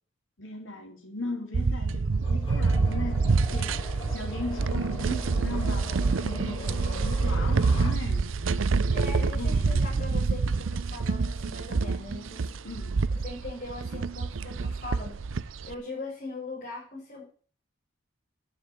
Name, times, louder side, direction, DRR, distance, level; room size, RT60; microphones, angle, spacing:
voice 1, 0.4-8.3 8.9-9.9 12.6-13.0, left 2 dB, 85° left, 3.1 m, -38 dB
sound 1, 1.5-15.7, right 4 dB, 85° right, 0.6 m, -27 dB
sound 2, 2.2-8.0, left 3 dB, 25° left, 6.7 m, -41 dB
voice 2, 8.9-12.6 13.2-15.2 15.6-17.2, left 2 dB, 45° left, 6.8 m, -40 dB
10.0 x 6.8 x 9.2 m
head